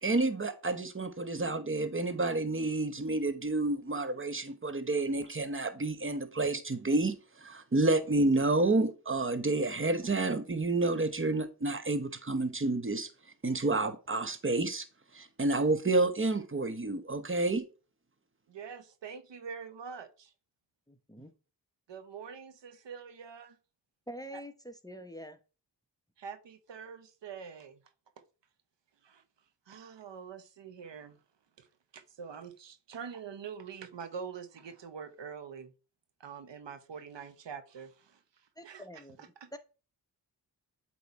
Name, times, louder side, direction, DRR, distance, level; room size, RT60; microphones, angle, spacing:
voice 1, 0.0-13.1 13.4-14.9 15.1-17.6, right 2 dB, 30° right, 1.0 m, -29 dB
voice 2, 18.5-20.3 21.9-23.6 24.3-24.4 26.2-27.8 29.0-29.2 29.7-31.2 31.6-31.7 31.9-35.7 36.2-38.2 38.6-38.8 39.2-39.5, right 6 dB, 80° right, 0.8 m, -45 dB
voice 3, 20.9-21.3 24.1-25.4 38.6-39.6, equal, 10° left, 0.8 m, -46 dB
8.1 x 3.0 x 4.1 m
cardioid pair, 45°, 43 cm